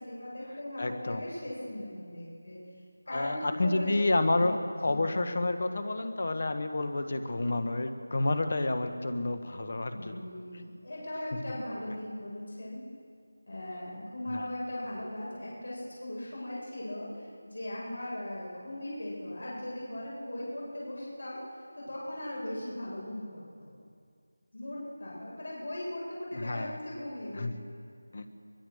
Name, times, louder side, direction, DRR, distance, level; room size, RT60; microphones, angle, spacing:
voice 1, 0.0-2.6 3.1-3.9 4.4-4.5 4.9-5.1 9.9-12.8 13.5-21.4 21.7-23.7 24.5-27.6, left 1 dB, 60° left, -5 dB, 7.9 m, -39 dB
voice 2, 0.8-1.2 3.1-10.1 14.3-14.4 26.3-26.8 27.3-27.5 28.1-28.3, left 2 dB, 35° left, 9 dB, 1.4 m, -29 dB
23.5 x 20.0 x 6.5 m, 2.3 s
figure-of-eight pair, 180°, 0 cm